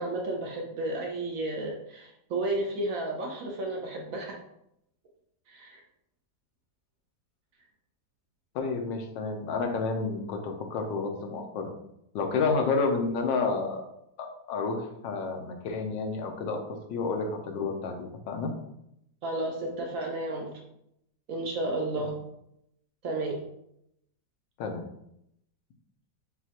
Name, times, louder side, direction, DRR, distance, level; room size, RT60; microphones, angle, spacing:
voice 1, 0.0-4.4 5.5-5.8 19.2-20.5 21.3-22.1 23.0-23.4, right 2 dB, 65° right, 0 dB, 0.9 m, -32 dB
voice 2, 8.5-11.7 12.1-13.8 14.2-16.6 16.9-17.9 18.3-18.5 24.6-24.8, left 4 dB, 90° left, 4 dB, 1.4 m, -30 dB
6.2 x 2.3 x 2.8 m, 0.78 s
omnidirectional pair, 1.9 m